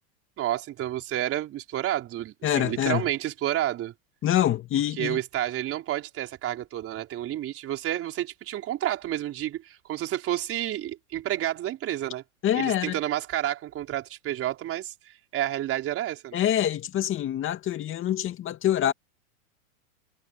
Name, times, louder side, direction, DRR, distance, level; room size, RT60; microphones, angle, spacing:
voice 1, 0.4-3.9 5.0-12.2 12.6-14.9 15.3-16.4, right 13 dB, 30° right, 4.5 m, -30 dB
voice 2, 2.4-3.0 4.2-5.2 12.4-13.0 16.3-18.9, left 11 dB, 30° left, 2.4 m, -25 dB
hypercardioid pair, 125°, 43 cm